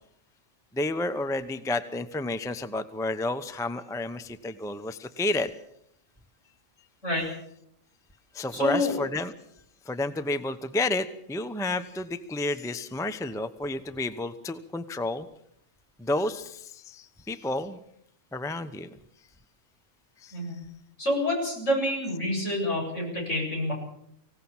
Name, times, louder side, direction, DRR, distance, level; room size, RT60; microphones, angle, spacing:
voice 1, 0.7-5.5 8.3-9.3 9.9-15.3 16.0-17.8 18.3-18.9 20.2-20.4, left 2 dB, 5° left, 11 dB, 0.8 m, -30 dB
voice 2, 8.5-8.9 20.3-20.6 21.0-23.7, left 1 dB, 70° left, 0 dB, 8.5 m, -27 dB
25.0 x 17.0 x 7.3 m, 0.74 s
omnidirectional pair, 1.3 m